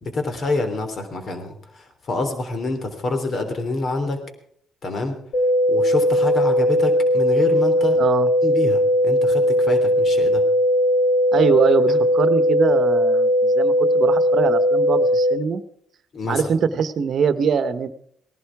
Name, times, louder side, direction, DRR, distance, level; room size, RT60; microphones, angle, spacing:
voice 1, 0.0-4.2 4.8-5.2 5.7-8.0 8.4-10.4 11.9-12.0 16.1-16.5, left 3 dB, 50° left, 7 dB, 3.3 m, -27 dB
sound 1, 5.3-15.3, equal, 75° left, 2.5 m, -18 dB
voice 2, 8.0-8.3 11.3-15.6 16.3-17.9, right 6 dB, 60° right, 12 dB, 1.0 m, -22 dB
18.0 x 11.5 x 4.8 m, 0.64 s
cardioid pair, 80°, 0 cm